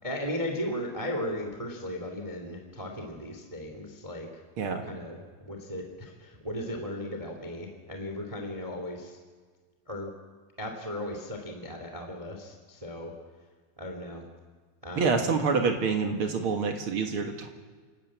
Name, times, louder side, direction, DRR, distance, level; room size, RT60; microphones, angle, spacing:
voice 1, 0.0-4.3 4.6-9.2 9.9-10.1 10.6-13.1 13.8-14.2 14.8-15.3, left 1 dB, 10° right, 3 dB, 1.6 m, -36 dB
voice 2, 14.9-17.5, right 5 dB, 55° right, 4 dB, 1.5 m, -27 dB
29.0 x 12.5 x 8.7 m, 1.5 s
omnidirectional pair, 4.5 m